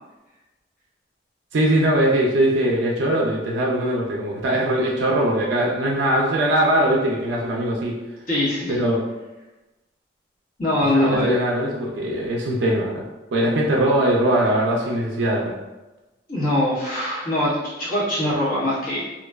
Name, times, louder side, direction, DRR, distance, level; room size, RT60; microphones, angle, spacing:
voice 1, 1.5-7.9 8.7-9.0 10.9-13.0 13.3-15.5, right 1 dB, 80° right, -2 dB, 0.4 m, -21 dB
voice 2, 8.3-8.8 10.6-11.4 16.3-19.1, left 1 dB, 50° left, -9 dB, 0.9 m, -22 dB
2.5 x 2.1 x 2.2 m, 1.1 s
head